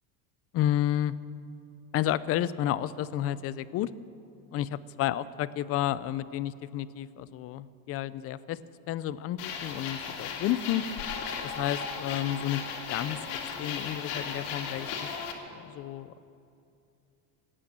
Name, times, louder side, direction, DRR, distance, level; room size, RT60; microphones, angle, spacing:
voice 1, 0.5-1.2 1.9-3.9 4.5-4.7 5.0-8.6 8.9-10.8 11.4-12.6 12.9-15.1 15.5-16.2, left 12 dB, 35° left, 17 dB, 0.4 m, -31 dB
sound 1, 9.4-15.3, left 6 dB, 80° left, 2.5 m, -36 dB
18.5 x 8.8 x 8.7 m, 2.7 s
cardioid pair, 140°, 45 cm